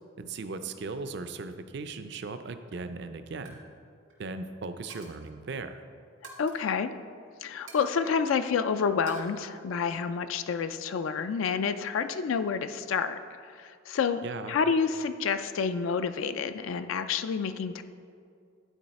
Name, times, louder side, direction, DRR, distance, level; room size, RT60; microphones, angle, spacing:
voice 1, 0.2-3.6 4.2-5.8 14.2-14.6, right 3 dB, 60° right, 9 dB, 0.4 m, -38 dB
Coin (dropping), 2.1-2.4 2.7-2.9 3.3-3.6 3.9-4.2 4.9-5.3 6.2-6.6 7.7-8.6 9.1-9.2, right 3 dB, 85° right, 2.0 m, -48 dB
voice 2, 6.4-6.9 7.4-17.8, left 6 dB, 85° left, 10 dB, 0.4 m, -29 dB
10.5 x 4.7 x 4.1 m, 2.3 s
head